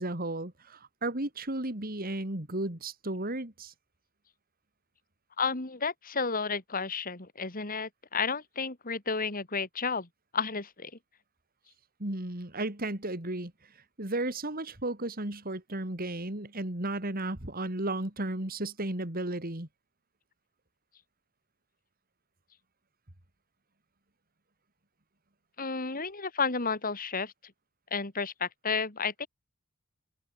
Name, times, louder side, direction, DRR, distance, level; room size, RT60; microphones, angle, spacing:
voice 1, 0.0-3.7 12.0-13.7 14.0-19.7, right 2 dB, 45° right, 3.2 m, -34 dB
voice 2, 5.4-10.1 10.3-10.9 25.6-27.3 27.9-29.3, left 5 dB, 40° left, 2.7 m, -32 dB
open air
head